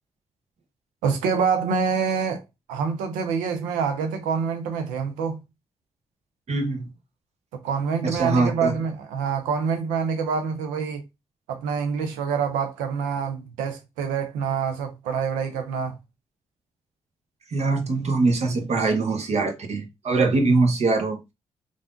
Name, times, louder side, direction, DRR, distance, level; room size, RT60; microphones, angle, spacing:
voice 1, 1.0-2.4 2.7-5.4 7.6-11.0 11.5-16.0, right 6 dB, 85° right, 0.4 m, -26 dB
voice 2, 6.5-6.9 8.0-8.7 17.5-21.2, right 3 dB, 55° right, 0.8 m, -23 dB
3.2 x 2.4 x 2.4 m
hypercardioid pair, 40°, 13 cm